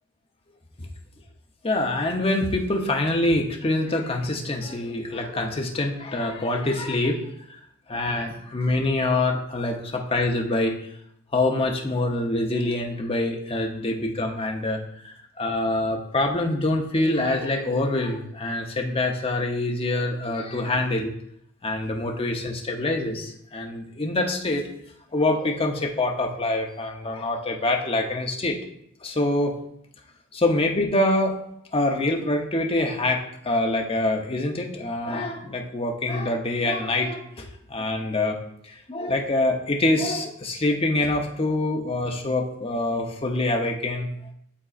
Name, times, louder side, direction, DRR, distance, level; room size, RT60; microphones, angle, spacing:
voice 1, 1.6-7.6 7.9-10.8 11.3-21.1 21.6-24.6 25.1-28.6 29.0-29.5 30.3-31.4 31.7-38.4 38.6-44.1, left 2 dB, 25° left, 2 dB, 0.7 m, -25 dB
11.0 x 3.7 x 2.5 m, 0.71 s
head